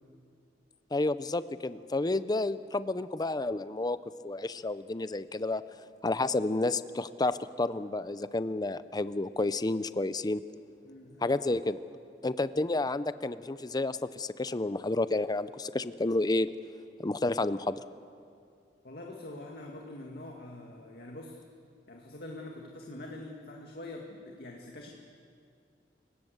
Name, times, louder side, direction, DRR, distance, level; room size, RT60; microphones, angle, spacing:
voice 1, 0.9-4.0 4.2-5.6 6.0-10.4 11.2-11.8 12.2-16.5 17.0-17.8, left 2 dB, 25° left, 14 dB, 0.6 m, -30 dB
voice 2, 10.8-11.3 18.8-21.4 21.9-24.9, left 1 dB, 60° left, 0 dB, 2.1 m, -44 dB
29.0 x 18.0 x 8.0 m, 2.4 s
head